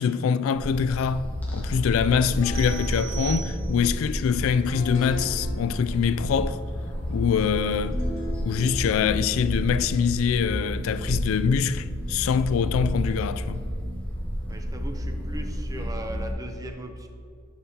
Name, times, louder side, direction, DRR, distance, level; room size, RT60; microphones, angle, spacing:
voice 1, 0.0-6.6 7.1-8.0 8.4-13.6, left 6 dB, 80° left, 0.3 m, -24 dB
sound 1, 0.5-16.3, equal, 10° left, 1.0 m, -31 dB
sound 2, 2.2-12.8, equal, 65° left, 1.7 m, -41 dB
sound 3, 2.5-4.1, right 10 dB, 65° right, 0.5 m, -39 dB
voice 2, 14.5-17.1, right 1 dB, 15° right, 0.5 m, -38 dB
11.0 x 5.4 x 2.8 m
head